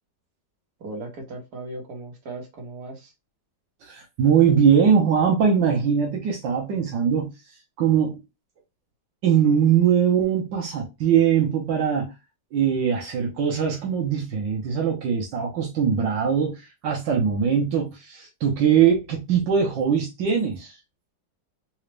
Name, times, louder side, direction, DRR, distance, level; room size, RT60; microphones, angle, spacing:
voice 1, 0.8-3.1, right 2 dB, 60° right, 1.8 m, -37 dB
voice 2, 3.8-7.3 7.8-8.2 9.2-12.1 12.5-20.8, right 7 dB, 85° right, 1.6 m, -21 dB
4.1 x 2.4 x 3.2 m
omnidirectional pair, 1.9 m